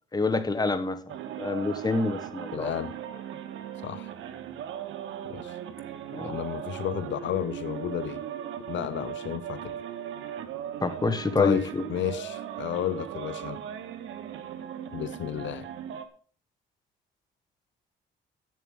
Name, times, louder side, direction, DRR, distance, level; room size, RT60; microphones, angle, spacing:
voice 1, 0.1-1.0 1.4-2.7 6.1-6.4 10.8-11.8, left 3 dB, 20° left, 1.5 m, -27 dB
sound 1, 1.1-16.1, right 9 dB, 80° right, 1.3 m, -38 dB
voice 2, 2.5-2.9 3.8-4.1 5.3-5.6 6.2-8.2 8.7-9.7 11.4-13.6 14.9-15.7, left 11 dB, 70° left, 0.7 m, -32 dB
11.0 x 8.4 x 5.4 m
cardioid pair, 90°, 20 cm